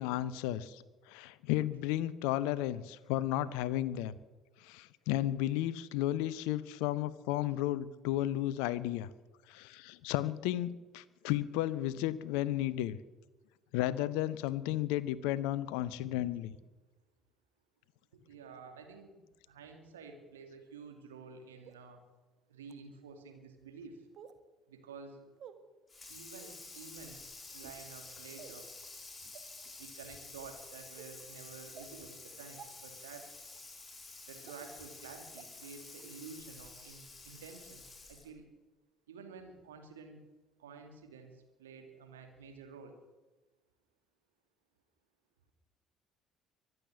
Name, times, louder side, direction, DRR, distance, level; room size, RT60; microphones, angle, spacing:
voice 1, 0.0-4.1 4.6-9.1 9.5-13.0 13.7-16.5, left 14 dB, 65° left, 18 dB, 0.7 m, -33 dB
voice 2, 15.8-16.3 18.3-19.2 19.5-22.0 22.5-24.0 24.7-25.2 26.1-28.7 29.8-33.3 34.3-37.8 38.1-38.4 39.1-40.2 40.6-41.3 41.6-43.0, right 5 dB, 75° right, 5 dB, 2.3 m, -51 dB
sound 1, 21.6-21.8 22.6-22.7 24.1-24.4 25.4-25.6 26.3-26.6 27.5-27.8 28.4-28.6 29.3-29.4 30.0-30.3 31.0-31.1 31.7-31.9 32.6-32.7 33.5-33.6 34.4-34.6 35.4-35.5 36.0-36.1, right 8 dB, 50° right, 1.5 m, -52 dB
Water tap faucet / Sink (filling or washing), 25.9-38.4, left 3 dB, 20° left, 5.1 m, -50 dB
24.0 x 8.0 x 7.2 m, 1.2 s
figure-of-eight pair, 55°, 0 cm